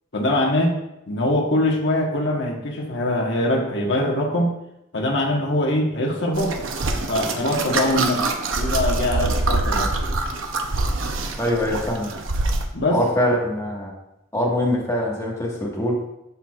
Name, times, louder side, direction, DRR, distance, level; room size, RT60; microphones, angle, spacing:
voice 1, 0.1-0.7 1.1-4.5 4.9-6.5 7.1-8.2 8.5-9.9 12.7-13.0, left 1 dB, 60° left, 0 dB, 1.3 m, -22 dB
sound 1, 6.3-12.6, right 2 dB, 75° right, 0.8 m, -25 dB
voice 2, 11.4-12.1 12.9-13.9 14.3-16.0, left 1 dB, 15° left, -3 dB, 1.5 m, -23 dB
12.5 x 4.4 x 2.4 m, 0.86 s
head